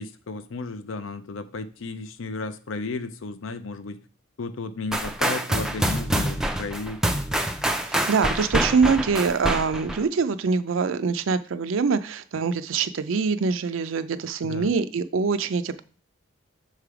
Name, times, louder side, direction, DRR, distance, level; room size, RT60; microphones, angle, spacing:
voice 1, 0.0-4.0 4.4-7.0 14.4-14.7, left 3 dB, 70° left, 12 dB, 0.5 m, -34 dB
sound 1, 4.9-10.0, right 1 dB, 5° right, 0.3 m, -26 dB
voice 2, 7.8-15.8, right 5 dB, 70° right, 11 dB, 0.4 m, -24 dB
6.7 x 3.3 x 4.8 m, 0.38 s
head